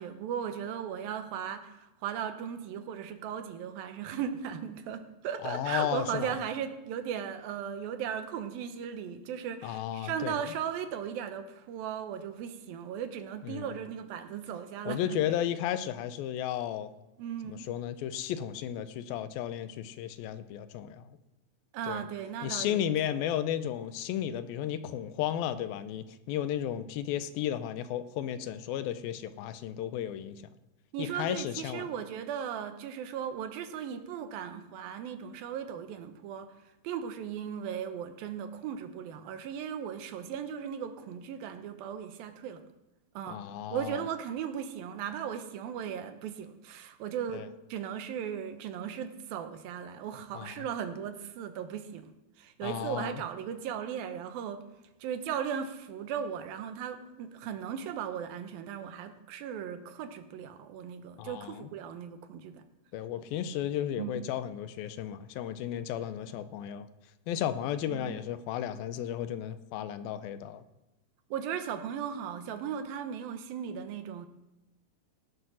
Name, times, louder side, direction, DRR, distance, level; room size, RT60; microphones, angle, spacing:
voice 1, 0.0-15.2 17.2-17.7 21.7-22.8 30.9-36.5 36.8-42.6 43.2-43.4 43.7-52.1 52.4-54.6 55.0-62.6 64.0-64.1 67.9-68.2 71.3-74.3, right 8 dB, 80° right, 8 dB, 2.8 m, -37 dB
voice 2, 5.4-6.4 9.6-10.5 13.4-13.7 14.9-16.9 17.4-21.2 21.8-22.0 22.4-30.4 31.0-31.9 43.3-44.1 47.3-47.5 50.3-50.7 52.6-53.2 61.2-61.7 62.9-66.9 67.3-70.6, left 10 dB, 85° left, 12 dB, 2.5 m, -34 dB
17.5 x 7.9 x 6.2 m, 0.98 s
omnidirectional pair, 4.2 m